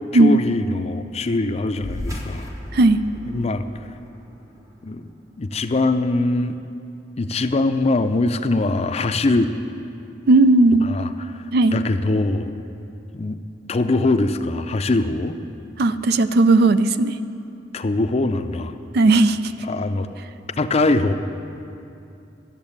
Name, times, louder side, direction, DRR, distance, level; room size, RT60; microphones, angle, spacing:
voice 1, 0.1-2.5 3.3-3.7 4.8-5.1 5.4-6.6 7.2-9.5 10.8-12.5 13.1-13.4 13.7-15.4 17.7-18.7 19.6-20.1 20.5-21.1, left 2 dB, 35° left, 9 dB, 0.5 m, -22 dB
sound 1, 1.8-6.6, left 1 dB, 20° right, 1.1 m, -37 dB
voice 2, 10.3-10.9 11.5-11.8 15.8-17.2 18.9-19.4, right 2 dB, 60° right, 13 dB, 0.4 m, -15 dB
12.5 x 7.4 x 8.6 m, 2.6 s
head